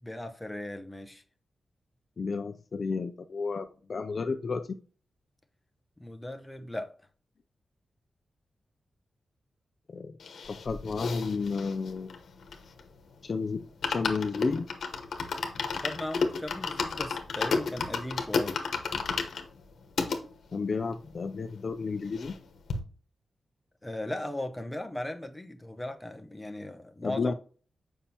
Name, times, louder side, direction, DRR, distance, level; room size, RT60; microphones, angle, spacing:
voice 1, 0.0-1.2 6.0-7.0 15.8-18.6 23.8-27.3, left 1 dB, 10° left, 0.7 m, -37 dB
voice 2, 2.2-4.8 9.9-10.2 10.5-12.2 13.2-14.7 20.5-22.3 27.0-27.3, left 4 dB, 40° left, 0.4 m, -32 dB
sound 1, 10.2-13.0 13.3-13.4 13.7-20.2 20.8-20.9 21.0-21.1 21.4-22.4 22.7-22.8, left 4 dB, 80° left, 1.0 m, -32 dB
7.2 x 5.5 x 2.8 m
wide cardioid pair, 155°, 0 cm